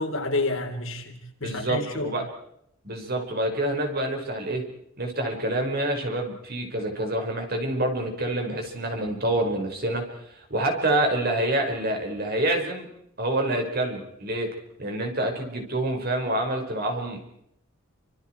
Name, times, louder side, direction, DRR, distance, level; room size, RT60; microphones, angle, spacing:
voice 1, 0.0-2.1, left 2 dB, 70° left, 4 dB, 3.8 m, -29 dB
voice 2, 1.4-2.2 2.8-4.6 5.0-10.0 10.5-12.9 13.2-14.5 14.8-17.2, right 1 dB, 45° right, 3 dB, 5.5 m, -27 dB
29.0 x 26.5 x 4.7 m, 0.73 s
head